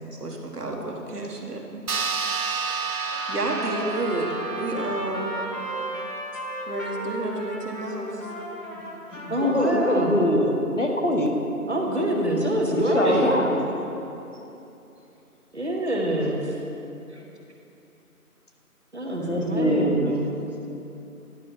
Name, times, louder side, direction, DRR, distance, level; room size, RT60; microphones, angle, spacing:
voice 1, 0.2-1.8 3.3-5.4 6.7-8.3 13.0-13.6, right 2 dB, 85° right, 1 dB, 1.5 m, -30 dB
sound 1, 1.9-6.7, right 5 dB, 65° right, 0.8 m, -31 dB
Trumpet, 3.1-10.2, equal, 70° left, 2.1 m, -36 dB
voice 2, 8.8-11.5 12.7-13.5 19.1-19.9, left 1 dB, 55° left, 1 dB, 1.1 m, -24 dB
voice 3, 9.3-10.1 11.7-13.4 15.5-16.6 17.1-17.2 18.9-20.3, right 1 dB, 45° right, 0 dB, 1.2 m, -25 dB
10.5 x 6.0 x 5.3 m, 2.9 s
figure-of-eight pair, 180°, 45 cm